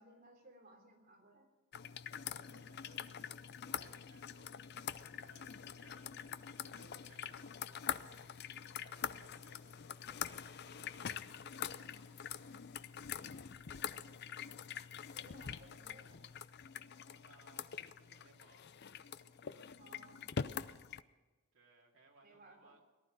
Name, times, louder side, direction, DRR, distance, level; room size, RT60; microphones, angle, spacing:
voice 1, 0.0-1.5 13.7-14.4 15.1-16.2 19.8-20.3 22.2-22.8, right 1 dB, 45° right, 1 dB, 3.4 m, -61 dB
sound 1, 1.7-21.0, left 8 dB, 55° left, 0.5 m, -45 dB
voice 2, 1.8-12.1 17.1-18.8 21.5-22.8, right 3 dB, 75° right, 0 dB, 2.5 m, -66 dB
sound 2, 5.4-12.9, left 1 dB, 10° left, 2.1 m, -72 dB
18.5 x 12.0 x 6.3 m, 1.2 s
head